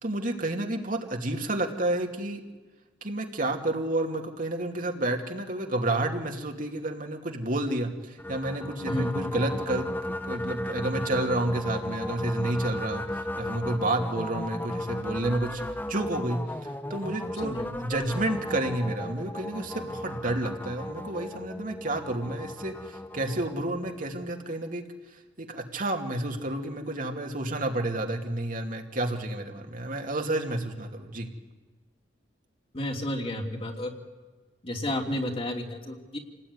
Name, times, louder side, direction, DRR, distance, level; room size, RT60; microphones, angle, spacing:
voice 1, 0.0-2.4 3.0-15.6 15.9-17.5 17.8-24.8 25.1-31.3, right 1 dB, 50° right, 3 dB, 2.7 m, -30 dB
sound 1, 8.2-24.4, left 1 dB, 10° left, 1.0 m, -35 dB
voice 2, 32.7-33.9 34.6-36.2, left 1 dB, 30° left, 2 dB, 3.1 m, -31 dB
28.5 x 19.0 x 9.8 m, 1.3 s
head